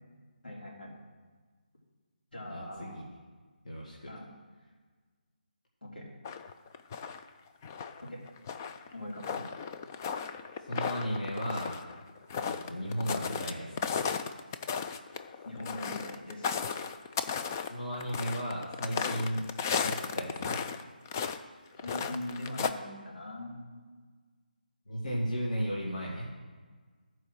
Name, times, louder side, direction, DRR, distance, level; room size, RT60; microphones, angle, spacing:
voice 1, 0.4-1.0 2.3-3.0 4.1-4.3 5.8-6.1 8.0-8.2 8.9-9.4 15.4-16.5 21.8-23.6, left 1 dB, 80° left, -4 dB, 3.6 m, -41 dB
voice 2, 2.5-3.0 3.6-4.1 10.6-11.8 12.4-13.9 17.6-19.4 19.8-20.6 24.9-26.3, equal, 45° left, -4 dB, 2.1 m, -35 dB
sound 1, 6.2-7.3 7.6-13.5 13.8-20.8 21.1-21.4 21.7-22.7, left 6 dB, 20° left, 0.3 m, -35 dB
13.5 x 4.8 x 6.3 m, 1.5 s
figure-of-eight pair, 155°, 5 cm